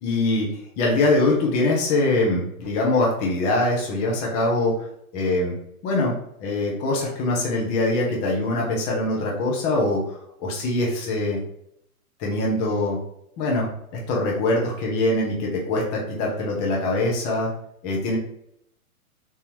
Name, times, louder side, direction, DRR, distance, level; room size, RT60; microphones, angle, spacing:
voice 1, 0.0-0.5 0.8-4.7 5.1-5.5 5.8-6.1 6.4-11.4 12.2-13.0 13.4-13.7 14.1-17.5 17.8-18.2, left 2 dB, 20° left, -2 dB, 0.8 m, -23 dB
3.9 x 2.7 x 3.0 m, 0.73 s
figure-of-eight pair, 110°, 44 cm